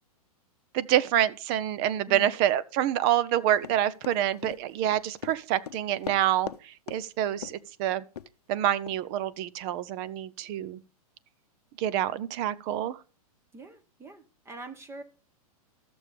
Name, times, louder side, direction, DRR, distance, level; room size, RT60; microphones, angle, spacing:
voice 1, 0.7-8.0 8.5-10.8 11.8-13.0, right 11 dB, 40° right, 0.7 m, -27 dB
Run, 3.6-6.6 6.9-7.0 7.4-7.7 8.2-8.3 8.9-9.0, left 9 dB, 90° left, 0.7 m, -39 dB
voice 2, 13.5-15.0, right 2 dB, 15° right, 1.0 m, -44 dB
13.5 x 6.9 x 5.1 m
hypercardioid pair, 135°, 19 cm